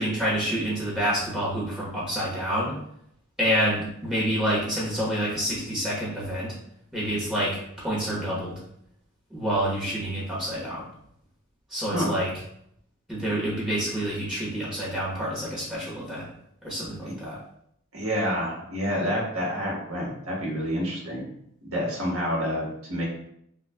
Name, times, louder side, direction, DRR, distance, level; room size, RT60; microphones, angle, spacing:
voice 1, 0.0-2.8 3.4-6.5 6.9-8.6 9.3-10.8 11.7-12.3 13.1-16.3 16.6-17.4, equal, 5° right, -7 dB, 1.0 m, -28 dB
voice 2, 17.9-21.2 21.6-23.0, equal, 80° right, -3 dB, 1.4 m, -28 dB
5.8 x 2.3 x 2.3 m, 0.73 s
head